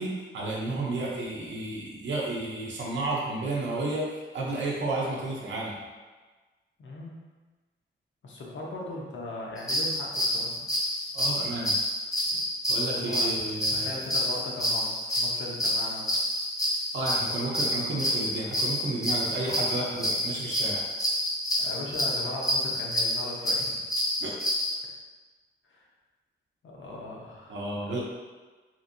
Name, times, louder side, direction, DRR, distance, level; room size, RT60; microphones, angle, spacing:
voice 1, 0.0-4.0 4.3-5.8 11.1-11.7 12.7-14.0 16.9-20.8 24.2-24.3 27.5-28.0, right 2 dB, 65° right, -4 dB, 0.6 m, -32 dB
voice 2, 6.8-7.2 8.2-10.6 12.9-13.4 13.7-16.1 21.6-23.8 25.7-25.9 26.6-27.6 27.8-28.0, left 2 dB, 75° left, -3 dB, 0.7 m, -38 dB
sound 1, 9.6-24.7, equal, 15° left, 0.5 m, -28 dB
2.9 x 2.6 x 2.5 m, 1.3 s
wide cardioid pair, 135°, 20 cm